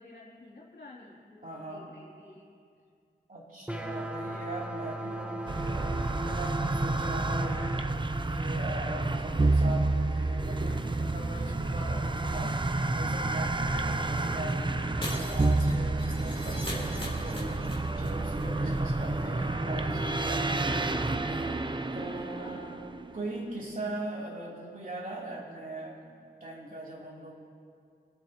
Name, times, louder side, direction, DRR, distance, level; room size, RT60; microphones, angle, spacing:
voice 1, 0.0-2.5 3.8-4.2 19.1-19.8 22.3-22.9, left 2 dB, 70° left, -7 dB, 3.0 m, -52 dB
voice 2, 1.4-1.9 3.3-7.7 8.3-17.7 18.0-20.9 21.9-22.6 23.1-27.3, right 2 dB, 50° right, -5 dB, 3.1 m, -40 dB
sound 1, 3.7-7.8, right 1 dB, 5° right, 1.0 m, -37 dB
sound 2, 5.5-23.4, right 2 dB, 25° right, 0.6 m, -29 dB
Shatter, 15.0-18.1 18.3-18.4 18.7-18.8, left 1 dB, 30° left, 3.4 m, -40 dB
26.5 x 9.4 x 2.9 m, 2.3 s
wide cardioid pair, 80°, 18 cm